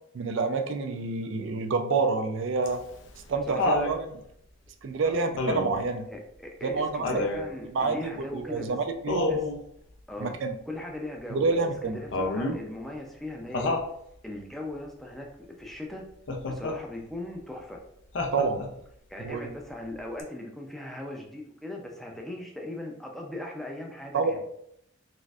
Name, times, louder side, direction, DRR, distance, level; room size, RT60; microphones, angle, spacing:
voice 1, 0.1-2.8 3.3-4.2 4.8-6.1 6.6-7.1 7.7-9.4 10.2-10.5 11.3-12.0 18.3-18.6 19.2-19.5 24.1-24.4, right 4 dB, 65° right, 6 dB, 0.4 m, -28 dB
Laughter, 2.7-4.0 5.4-5.9 7.0-7.5 9.1-9.6 12.1-12.6 13.5-13.9 16.3-16.8 18.2-18.8 20.2-20.3, left 2 dB, 60° left, 0.5 m, -28 dB
voice 2, 3.5-4.0 5.0-5.2 6.1-8.8 9.3-9.5 10.1-10.4 10.7-13.8 14.2-15.3 15.6-16.0 16.4-17.8 19.1-24.4, left 1 dB, ahead, 0 dB, 0.4 m, -39 dB
4.0 x 2.5 x 2.3 m, 0.73 s
head